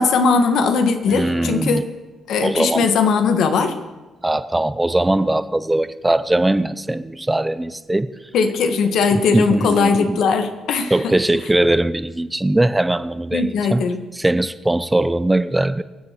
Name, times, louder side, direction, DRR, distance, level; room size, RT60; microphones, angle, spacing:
voice 1, 0.0-1.9 2.3-3.7 8.3-10.9 13.3-14.0, left 5 dB, 75° left, 1.6 m, -19 dB
voice 2, 1.1-1.8 2.4-2.8 4.2-8.1 9.3-10.2 10.9-13.8 14.1-15.8, right 1 dB, 10° right, 0.6 m, -20 dB
22.5 x 7.9 x 6.8 m
cardioid pair, 90°, 0 cm